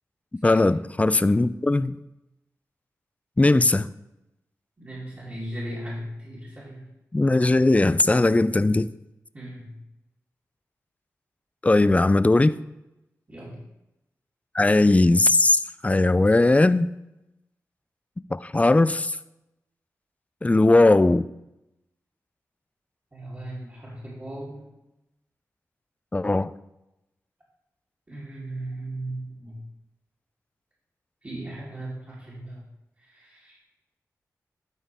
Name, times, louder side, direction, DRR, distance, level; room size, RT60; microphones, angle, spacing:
voice 1, 0.4-1.9 3.4-3.9 7.1-8.9 11.6-12.6 14.5-16.9 18.3-19.2 20.4-21.3 26.1-26.5, left 2 dB, 20° left, 15 dB, 0.4 m, -19 dB
voice 2, 4.8-6.9 9.3-9.8 13.3-13.7 23.1-24.7 28.1-29.6 31.2-32.6 33.0-33.6, right 1 dB, 35° right, -9 dB, 2.9 m, -37 dB
12.0 x 4.5 x 3.5 m, 0.92 s
cardioid pair, 45°, 6 cm